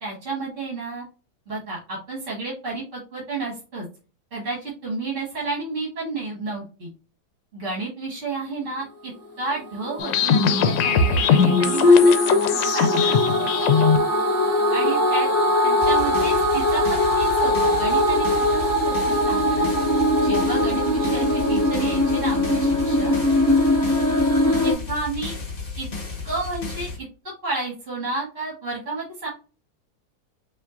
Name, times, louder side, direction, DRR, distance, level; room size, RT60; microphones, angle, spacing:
voice 1, 0.0-1.1 1.5-3.9 4.3-6.9 7.5-9.1 9.4-12.3 12.7-13.2 14.7-15.3 15.6-18.3 18.8-19.7 20.2-23.1 24.6-25.4 25.8-25.9 26.2-27.1 27.4-29.3, right 3 dB, 40° right, -5 dB, 1.7 m, -31 dB
sound 1, 9.6-24.7, left 1 dB, 10° left, 1.1 m, -21 dB
sound 2, 10.0-14.0, left 5 dB, 75° left, 1.2 m, -18 dB
sound 3, 15.8-27.0, left 4 dB, 30° left, 1.2 m, -33 dB
5.6 x 3.2 x 2.5 m, 0.35 s
omnidirectional pair, 2.1 m